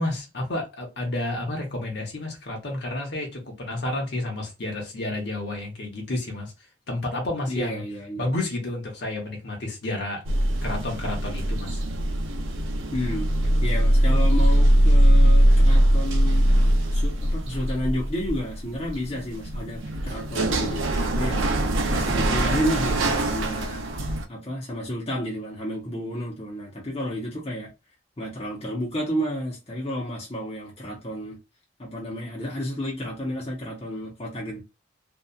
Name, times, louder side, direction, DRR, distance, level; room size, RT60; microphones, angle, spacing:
voice 1, 0.0-6.5 6.9-7.8 8.2-10.2 10.6-11.8, left 2 dB, 55° left, 0.8 m, -30 dB
voice 2, 7.5-8.3 12.9-13.3 13.6-16.5 16.9-21.5 21.9-27.7 28.2-31.4 31.8-34.6, equal, 30° left, 0.7 m, -31 dB
sound 1, 10.3-24.2, right 1 dB, 75° right, 0.5 m, -21 dB
2.7 x 2.3 x 2.2 m
head